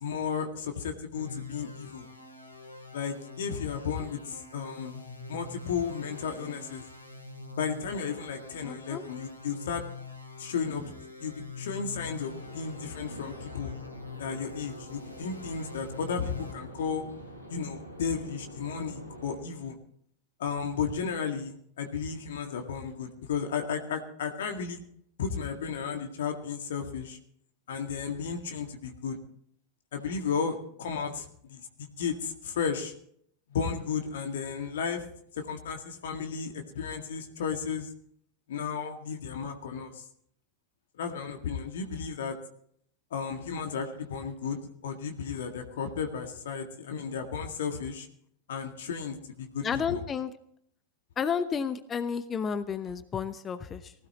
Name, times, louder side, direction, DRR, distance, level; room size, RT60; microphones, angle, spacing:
voice 1, 0.0-2.1 2.9-6.8 7.6-9.8 10.4-10.9 11.2-13.7 14.2-17.0 17.5-19.8 20.4-24.8 25.2-27.2 27.7-29.2 29.9-31.7 32.0-32.9 33.5-35.0 35.3-37.9 38.5-40.0 41.0-42.4 43.1-48.1 48.5-50.0, left 6 dB, 60° left, 5 dB, 2.0 m, -34 dB
sound 1, 1.2-16.5, left 4 dB, 80° left, 2.7 m, -45 dB
voice 2, 8.6-9.0 49.6-50.3 51.2-53.9, left 6 dB, 20° left, 12 dB, 0.9 m, -31 dB
sound 2, 12.2-19.4, equal, 85° right, 7.8 m, -46 dB
19.5 x 16.5 x 3.0 m, 0.65 s
figure-of-eight pair, 90°, 0 cm